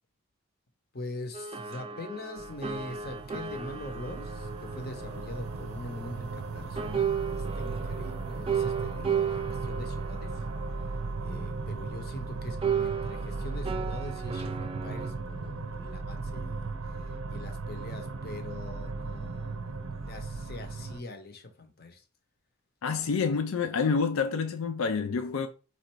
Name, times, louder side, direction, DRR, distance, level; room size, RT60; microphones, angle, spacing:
voice 1, 0.9-10.4 11.2-22.0 22.9-23.4, left 2 dB, 45° left, 0.9 m, -43 dB
sound 1, 1.3-6.5 6.8-12.2 12.6-15.1, right 7 dB, 25° right, 0.3 m, -35 dB
sound 2, 2.4-21.0, right 3 dB, 80° right, 0.5 m, -36 dB
voice 2, 22.8-25.5, left 5 dB, 85° left, 0.4 m, -28 dB
4.3 x 2.5 x 4.5 m
head